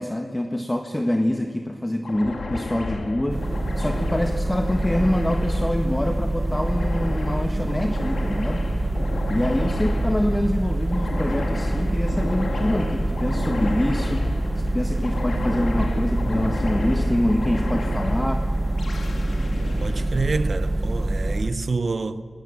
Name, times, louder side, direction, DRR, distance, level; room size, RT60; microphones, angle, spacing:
voice 1, 0.0-3.4 3.8-8.6 9.3-14.2 14.5-18.5, left 1 dB, 15° left, 1.5 m, -25 dB
sound 1, 2.0-20.9, left 3 dB, 80° left, 2.6 m, -33 dB
sound 2, 3.3-21.5, right 1 dB, 40° right, 1.4 m, -25 dB
voice 2, 19.8-22.2, right 4 dB, 60° right, 1.0 m, -27 dB
27.5 x 20.5 x 7.5 m
wide cardioid pair, 70°, 0 cm